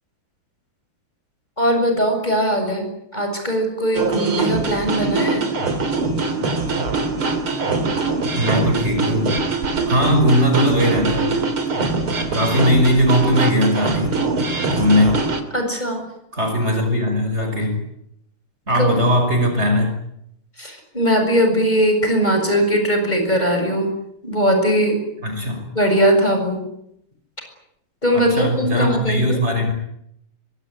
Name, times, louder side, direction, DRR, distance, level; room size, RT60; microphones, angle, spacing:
voice 1, 1.6-2.9 3.1-5.4 15.5-16.0 18.7-18.9 20.6-23.9 24.2-25.0 25.8-26.6 28.0-29.4, equal, 20° left, 4 dB, 7.3 m, -19 dB
sound 1, 3.9-15.4, right 3 dB, 80° right, 4.0 m, -22 dB
voice 2, 8.3-9.3 9.9-11.3 12.3-14.2 14.7-15.2 16.3-17.8 18.7-19.9 25.2-25.7 28.1-29.7, equal, 30° right, 5 dB, 6.0 m, -19 dB
24.5 x 23.5 x 9.8 m, 0.78 s
omnidirectional pair, 2.3 m